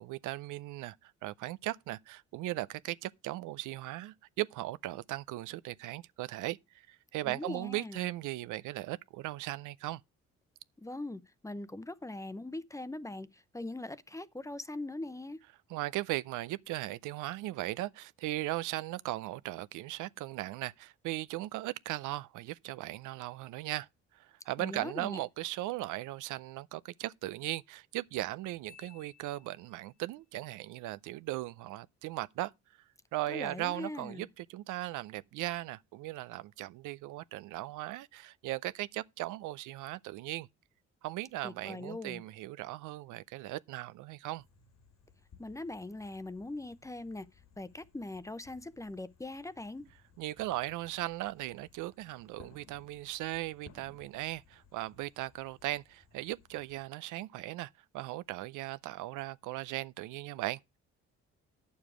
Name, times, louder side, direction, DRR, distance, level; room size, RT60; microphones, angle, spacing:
voice 1, 0.0-10.0 15.7-23.9 24.1-32.5 33.1-40.5 41.0-44.4 50.2-60.8, right 17 dB, 90° right, 0.5 m, -38 dB
voice 2, 7.2-8.1 10.8-15.4 24.6-25.2 33.3-34.3 41.4-42.2 45.4-47.3 47.6-49.9, left 2 dB, 10° left, 0.7 m, -41 dB
Marimba xylophone, 28.7-30.1, left 7 dB, 15° right, 1.8 m, -60 dB
sound 1, 44.4-56.9, left 5 dB, 55° left, 1.7 m, -62 dB
9.4 x 7.0 x 4.8 m
cardioid pair, 90°, 30 cm